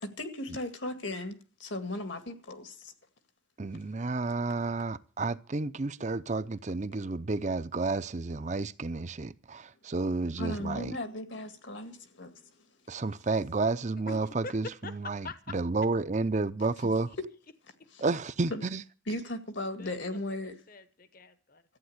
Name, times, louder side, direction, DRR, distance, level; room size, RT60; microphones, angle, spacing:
voice 1, 0.0-2.9 6.0-6.1 10.4-12.4 17.9-18.0 18.5-18.7 19.1-20.6, left 1 dB, 75° left, 2.1 m, -37 dB
voice 2, 3.6-11.0 12.9-17.1 18.0-18.8, right 3 dB, 40° right, 0.6 m, -31 dB
voice 3, 14.1-14.5 14.8-15.6 19.7-21.6, left 3 dB, 50° left, 1.0 m, -45 dB
14.0 x 9.4 x 7.9 m
head